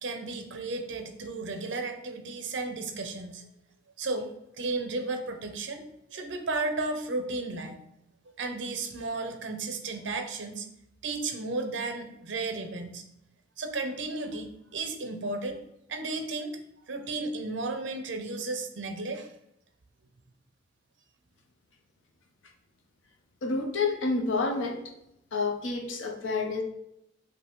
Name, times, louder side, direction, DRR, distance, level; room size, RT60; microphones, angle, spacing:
voice 1, 0.0-3.4 4.0-5.8 6.1-7.8 8.4-10.7 11.0-13.0 13.6-15.6 15.9-19.3, right 3 dB, 65° right, 6 dB, 0.6 m, -34 dB
voice 2, 23.4-24.8 25.3-26.6, left 3 dB, 80° left, 3 dB, 0.7 m, -29 dB
5.3 x 3.0 x 3.0 m, 0.81 s
head